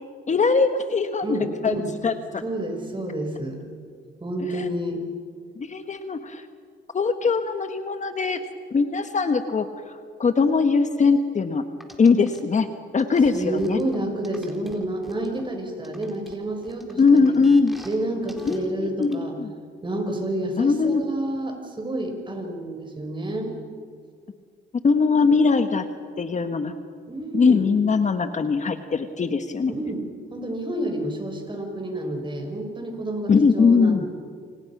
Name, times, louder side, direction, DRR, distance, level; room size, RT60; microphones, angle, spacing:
voice 1, 0.3-1.4 1.6-1.7 2.0-2.1 4.5-4.7 5.6-6.4 6.9-8.4 8.7-11.6 12.0-12.7 12.9-13.8 17.0-17.8 18.5-19.5 20.6-21.0 24.8-25.8 26.2-26.7 27.3-29.7 33.3-34.0, left 4 dB, 35° left, 8 dB, 1.4 m, -21 dB
voice 2, 1.2-1.9 2.4-3.6 4.2-5.0 13.3-17.4 17.8-19.4 19.8-23.5 27.1-27.7 29.7-30.0 30.3-34.1, right 1 dB, 25° right, 4 dB, 5.8 m, -29 dB
sound 1, 11.8-12.4 13.0-15.4 15.8-18.0 18.3-18.6 19.0-19.1, equal, ahead, 4.2 m, -45 dB
29.0 x 26.5 x 6.1 m, 2.1 s
cardioid pair, 90°, 20 cm